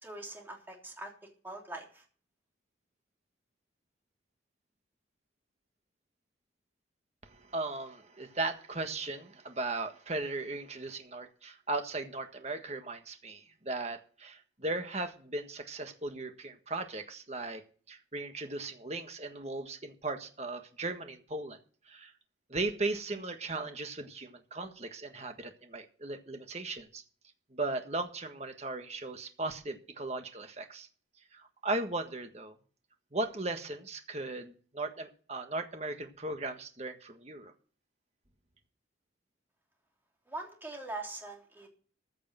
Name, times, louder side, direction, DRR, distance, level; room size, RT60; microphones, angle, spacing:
voice 1, 0.0-1.1 1.4-2.0 40.3-41.7, right 2 dB, 10° right, 0 dB, 3.3 m, -42 dB
voice 2, 7.2-17.6 17.9-21.6 21.9-22.1 22.5-27.0 27.5-30.9 31.3-32.5 33.1-37.5, right 2 dB, 35° right, 6 dB, 1.5 m, -37 dB
14.5 x 6.7 x 7.7 m, 0.42 s
head